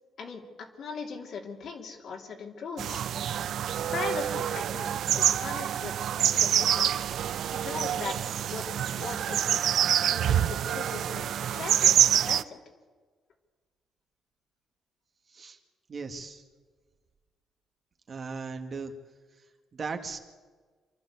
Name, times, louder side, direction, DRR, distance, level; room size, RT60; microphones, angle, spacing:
voice 1, 0.2-3.0 3.9-5.9 6.3-6.9 7.6-8.2 8.5-8.6 9.0-9.6 10.1-11.9 12.2-12.6, left 5 dB, 65° left, 2 dB, 3.1 m, -39 dB
sound 1, 2.8-12.4, right 10 dB, 70° right, 0.5 m, -26 dB
voice 2, 15.9-16.4 18.1-18.9 19.7-20.2, right 4 dB, 40° right, 5 dB, 1.9 m, -37 dB
27.5 x 12.0 x 8.2 m, 1.5 s
cardioid pair, 105°, 0 cm